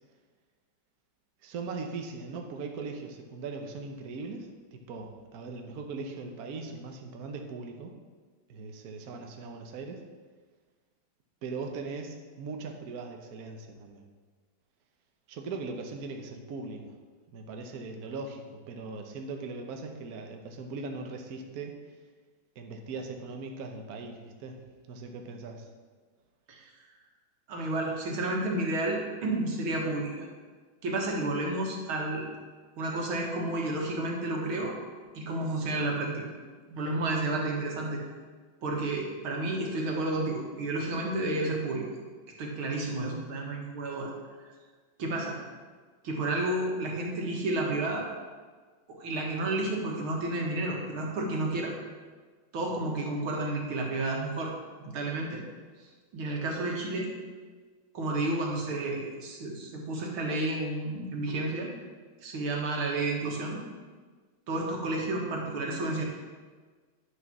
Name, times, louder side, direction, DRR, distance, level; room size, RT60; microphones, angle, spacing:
voice 1, 1.4-7.9 8.5-10.0 11.4-14.0 15.3-16.9 17.3-21.8 22.6-24.6 24.9-25.7, right 4 dB, 55° right, 3 dB, 1.3 m, -39 dB
voice 2, 27.5-30.3 30.8-32.3 32.8-34.8 35.1-36.3 36.7-38.0 38.6-41.9 42.4-44.1 44.4-44.5 45.0-45.4 46.0-48.1 48.9-51.7 52.5-54.5 54.8-55.4 56.1-57.1 57.9-61.7 62.2-63.6 64.5-66.0, right 2 dB, 90° right, -1 dB, 2.5 m, -31 dB
9.5 x 6.6 x 6.0 m, 1.4 s
omnidirectional pair, 2.2 m